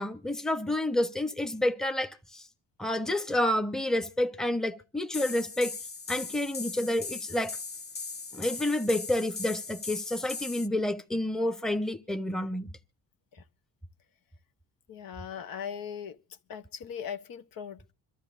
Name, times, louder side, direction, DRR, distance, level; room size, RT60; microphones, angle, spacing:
voice 1, 0.0-2.5 2.8-5.7 6.1-7.6 8.3-12.7, left 1 dB, ahead, 0.9 m, -29 dB
sound 1, 5.1-10.7, left 4 dB, 25° left, 0.8 m, -39 dB
voice 2, 14.9-16.2 16.5-17.9, left 8 dB, 70° left, 1.1 m, -39 dB
26.5 x 13.0 x 2.5 m
cardioid pair, 100°, 36 cm